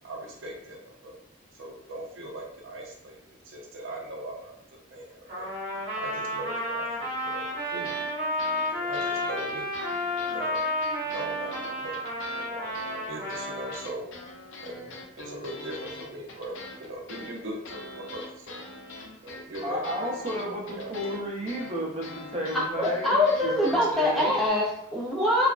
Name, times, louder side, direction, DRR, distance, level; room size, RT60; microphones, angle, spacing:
voice 1, 0.0-1.2 1.5-5.5 6.0-8.1 8.7-9.7 10.1-10.7 11.0-12.1 12.3-14.1 14.6-18.6 19.2-20.9, right 1 dB, 80° right, -1 dB, 0.6 m, -40 dB
Trumpet, 5.3-13.8, left 1 dB, 50° right, 1.0 m, -31 dB
sound 1, 7.7-8.1 8.4-12.5 12.7-24.5, left 2 dB, 85° left, 0.5 m, -43 dB
voice 2, 19.6-24.3, equal, 30° right, -3 dB, 0.7 m, -32 dB
voice 3, 22.5-25.5, left 1 dB, ahead, -5 dB, 0.4 m, -24 dB
3.1 x 2.1 x 2.4 m, 0.73 s
head